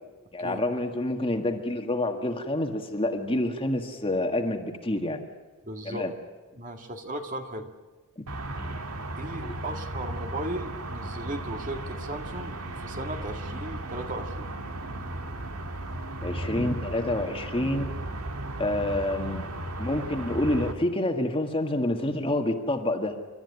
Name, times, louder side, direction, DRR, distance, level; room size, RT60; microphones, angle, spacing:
voice 1, 0.3-5.2 5.8-6.1 8.2-8.3 8.6-8.8 9.4-9.5 16.2-17.9 18.6-19.4 19.8-23.2, left 1 dB, 25° left, 4 dB, 1.8 m, -28 dB
voice 2, 5.6-6.1 6.5-7.6 9.2-14.5, right 1 dB, 35° right, 4 dB, 2.1 m, -36 dB
sound 1, 8.3-20.7, right 1 dB, 85° right, 2.1 m, -35 dB
29.5 x 13.0 x 9.7 m, 1.2 s
head